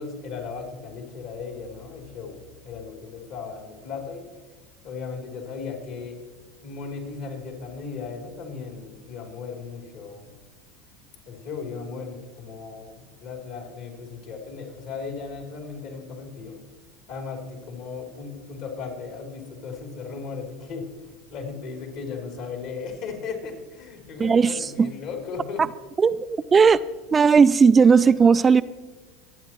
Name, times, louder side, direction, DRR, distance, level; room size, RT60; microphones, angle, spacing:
voice 1, 0.0-4.2 4.8-6.1 6.6-10.3 11.2-16.6 17.1-25.6, left 5 dB, 60° left, 1 dB, 3.3 m, -36 dB
voice 2, 24.2-24.9 26.0-26.8 27.1-28.6, right 5 dB, 25° right, 13 dB, 0.3 m, -17 dB
22.5 x 8.8 x 3.1 m, 1.3 s
hypercardioid pair, 80°, 0 cm